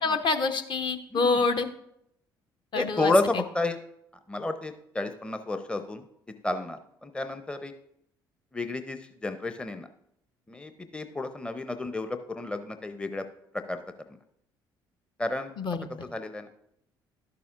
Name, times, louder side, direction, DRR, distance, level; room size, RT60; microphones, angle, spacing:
voice 1, 0.0-1.7 2.7-3.1 15.6-15.9, left 4 dB, 45° left, 7 dB, 0.8 m, -26 dB
voice 2, 1.1-1.4 2.7-3.8 4.3-6.0 6.4-7.7 8.5-9.9 10.5-13.3 13.5-13.8 15.2-15.5 16.0-16.5, left 2 dB, 10° left, 9 dB, 0.6 m, -31 dB
11.5 x 6.8 x 2.5 m, 0.76 s
figure-of-eight pair, 50°, 11 cm